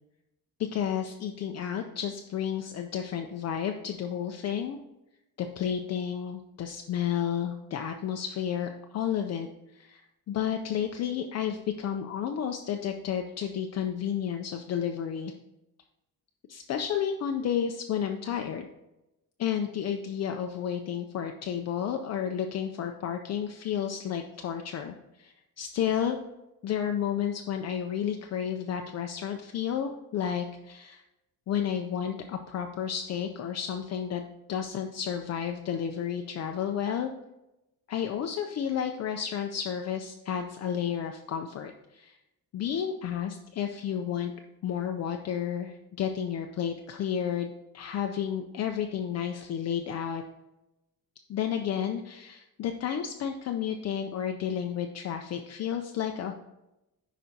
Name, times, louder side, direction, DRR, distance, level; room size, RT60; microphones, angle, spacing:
voice 1, 0.6-4.8 5.4-15.3 16.5-18.7 19.4-26.2 26.6-31.0 31.5-34.2 34.5-37.1 37.9-42.2 42.5-44.3 44.6-50.2 51.3-56.3, left 8 dB, 45° left, 5 dB, 0.4 m, -31 dB
10.0 x 5.0 x 2.7 m, 0.93 s
cardioid pair, 155°, 37 cm